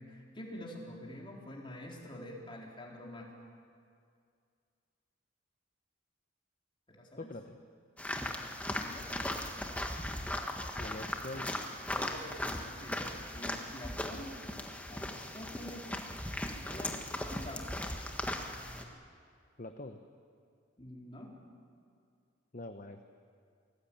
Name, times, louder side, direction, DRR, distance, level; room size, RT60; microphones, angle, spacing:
voice 1, 0.0-3.3 6.9-7.3 8.7-9.1 11.9-13.0 13.3-14.4 14.9-16.0 16.6-17.0 17.3-17.9 20.8-21.4, left 1 dB, 25° left, -2 dB, 4.3 m, -47 dB
voice 2, 7.2-7.6 10.8-11.5 19.6-20.0 22.5-23.0, left 2 dB, 40° left, 6 dB, 1.0 m, -44 dB
sound 1, 8.0-18.8, left 1 dB, 5° left, 1.6 m, -38 dB
28.0 x 19.0 x 8.9 m, 2.3 s
head